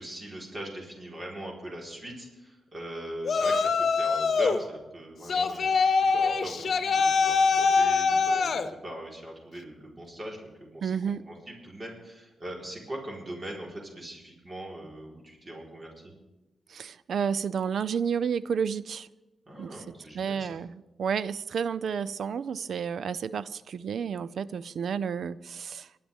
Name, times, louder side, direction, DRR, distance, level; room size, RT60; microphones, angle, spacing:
voice 1, 0.0-11.0 11.3-16.1 19.5-20.6, right 1 dB, 40° right, 4.3 m, -41 dB
Yell, 3.2-4.6 5.3-8.7, left 5 dB, 65° left, 0.9 m, -24 dB
voice 2, 10.8-11.3 16.7-19.1 19.6-19.8 20.1-25.9, right 7 dB, 75° right, 0.4 m, -31 dB
23.5 x 11.5 x 3.6 m
cardioid pair, 55°, 0 cm